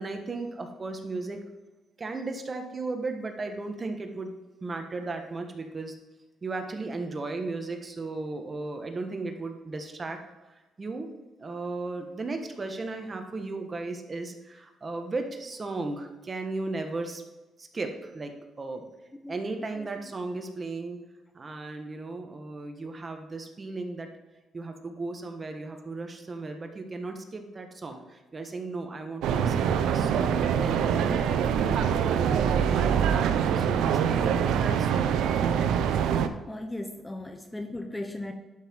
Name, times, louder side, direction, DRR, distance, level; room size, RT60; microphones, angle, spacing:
voice 1, 0.0-1.4 2.0-4.3 4.6-5.9 6.4-10.2 10.8-11.1 11.4-17.2 17.6-18.8 19.3-21.0 21.3-24.1 24.5-33.1 33.5-35.6, right 3 dB, 30° right, 5 dB, 1.5 m, -36 dB
sound 1, 29.2-36.3, right 8 dB, 85° right, 0.6 m, -24 dB
voice 2, 36.5-38.3, left 1 dB, 10° left, 6 dB, 0.9 m, -37 dB
11.5 x 5.8 x 4.6 m, 1.1 s
cardioid pair, 90°, 0 cm